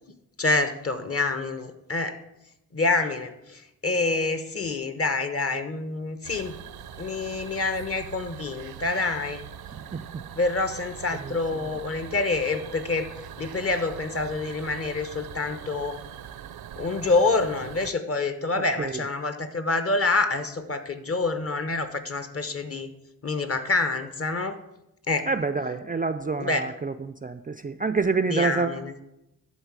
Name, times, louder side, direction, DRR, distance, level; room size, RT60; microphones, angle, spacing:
voice 1, 0.4-2.2 2.7-6.6 7.0-9.5 10.4-13.1 13.4-16.0 16.8-22.9 23.2-24.6 25.1-25.3 26.4-26.6 28.3-28.9, left 3 dB, 40° left, 10 dB, 1.0 m, -27 dB
sound 1, 6.2-17.9, right 9 dB, 75° right, 0.6 m, -42 dB
voice 2, 9.7-10.0 11.1-11.3 18.6-19.0 25.3-28.8, right 4 dB, 25° right, 10 dB, 0.4 m, -28 dB
11.5 x 4.0 x 7.4 m, 0.89 s
cardioid pair, 80°, 38 cm